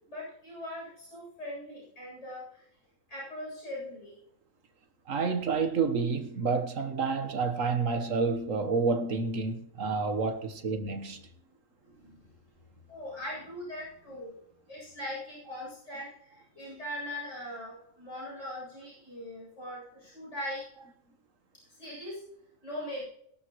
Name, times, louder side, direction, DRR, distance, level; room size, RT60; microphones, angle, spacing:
voice 1, 0.0-2.7 3.1-4.2 10.7-11.2 11.8-20.6 21.7-22.2 22.6-23.0, left 1 dB, 65° left, 8.4 m, -41 dB
voice 2, 5.1-11.2, right 4 dB, 80° right, 1.7 m, -29 dB
22.0 x 12.5 x 3.1 m
omnidirectional pair, 1.3 m